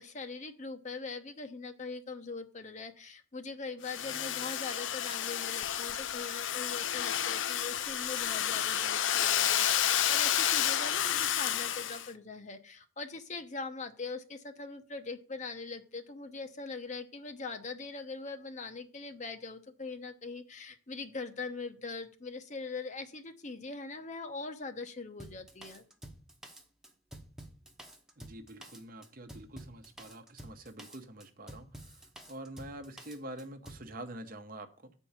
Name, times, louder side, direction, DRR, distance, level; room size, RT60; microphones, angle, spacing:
voice 1, 0.0-25.9, left 4 dB, 40° left, 0.8 m, -42 dB
Domestic sounds home sounds, 3.8-12.1, left 10 dB, 75° left, 0.5 m, -30 dB
Drum kit, 25.2-33.9, right 1 dB, 5° right, 0.9 m, -50 dB
voice 2, 28.2-31.7 32.3-34.9, right 1 dB, 45° right, 0.9 m, -46 dB
7.7 x 4.5 x 7.1 m
head